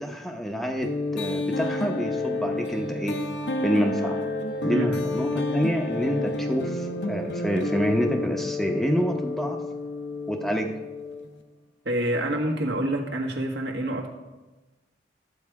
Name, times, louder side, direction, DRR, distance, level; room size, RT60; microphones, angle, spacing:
voice 1, 0.0-3.2 3.6-4.2 4.6-9.6 10.3-10.8, equal, ahead, 3 dB, 0.7 m, -27 dB
sound 1, 0.8-11.4, left 2 dB, 80° left, 0.8 m, -30 dB
voice 2, 4.7-5.0 11.8-14.1, right 1 dB, 75° right, 1 dB, 1.6 m, -27 dB
12.0 x 7.8 x 4.7 m, 1.1 s
head